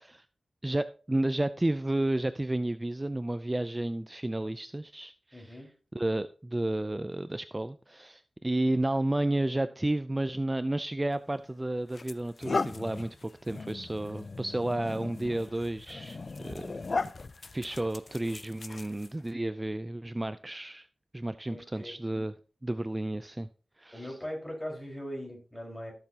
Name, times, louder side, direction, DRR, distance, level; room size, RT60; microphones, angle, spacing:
voice 1, 0.6-5.6 5.9-16.8 17.5-20.9 21.1-22.3 22.6-23.5 23.8-24.2, right 1 dB, 20° right, 0.4 m, -32 dB
voice 2, 5.3-5.7 21.5-21.9 23.9-25.9, equal, 20° left, 4.8 m, -40 dB
sound 1, 11.1-11.3 11.9-19.3, left 3 dB, 55° left, 0.4 m, -37 dB
15.5 x 6.8 x 2.9 m
cardioid pair, 60°, 0 cm